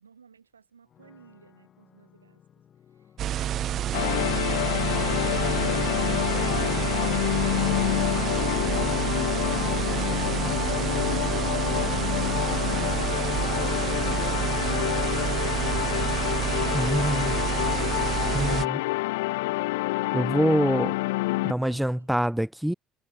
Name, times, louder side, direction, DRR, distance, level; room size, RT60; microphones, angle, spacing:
voice 1, 0.0-2.4 20.9-22.1, right 6 dB, 85° right, 4.5 m, -56 dB
sound 1, 0.9-20.0, left 9 dB, 45° left, 7.9 m, -58 dB
sound 2, 3.2-18.7, right 11 dB, 50° right, 1.6 m, -28 dB
sound 3, 3.9-21.5, left 21 dB, 70° left, 0.4 m, -27 dB
voice 2, 16.7-17.4 18.3-18.8 20.1-20.9 21.5-22.7, right 1 dB, 5° right, 0.4 m, -25 dB
figure-of-eight pair, 55°, 0 cm